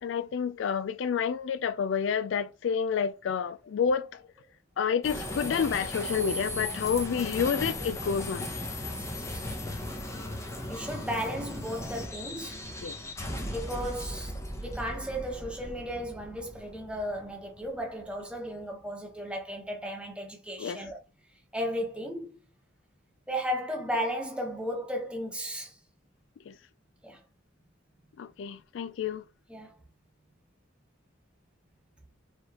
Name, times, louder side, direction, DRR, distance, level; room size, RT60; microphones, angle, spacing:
voice 1, 0.0-4.2 4.8-8.5 12.8-13.0 20.6-20.8 26.5-26.6 28.2-29.2, left 7 dB, 65° left, 0.3 m, -29 dB
sound 1, 5.0-18.4, left 1 dB, 15° left, 0.7 m, -37 dB
voice 2, 8.8-9.5 10.7-12.7 13.5-21.0 21.5-22.3 23.3-25.8 27.0-27.2 29.5-29.7, equal, 5° right, 1.0 m, -35 dB
4.8 x 3.1 x 2.9 m
head